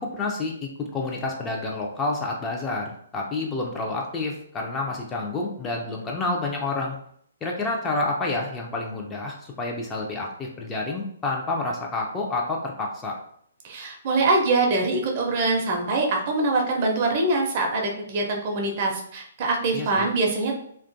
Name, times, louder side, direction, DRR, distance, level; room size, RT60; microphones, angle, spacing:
voice 1, 0.0-7.0 7.4-13.1 19.7-20.1, left 2 dB, 15° left, -1 dB, 0.4 m, -29 dB
voice 2, 13.6-20.6, right 2 dB, 40° right, 1 dB, 0.5 m, -24 dB
2.4 x 2.2 x 2.5 m, 0.66 s
figure-of-eight pair, 130°, 0 cm